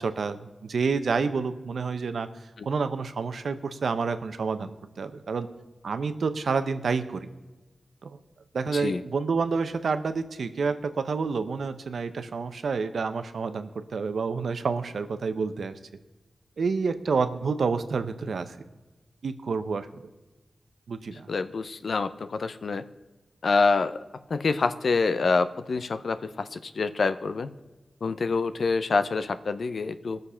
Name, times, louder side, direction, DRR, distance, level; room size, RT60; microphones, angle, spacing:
voice 1, 0.0-5.5 5.8-7.3 8.0-8.2 8.5-15.8 16.6-18.6 19.2-20.1 20.9-21.3, right 4 dB, 85° right, 10 dB, 0.7 m, -29 dB
voice 2, 21.3-22.8 23.4-24.0 24.3-27.5 28.0-30.2, left 4 dB, 75° left, 11 dB, 0.6 m, -26 dB
19.0 x 6.6 x 5.6 m, 1.2 s
wide cardioid pair, 85°, 0 cm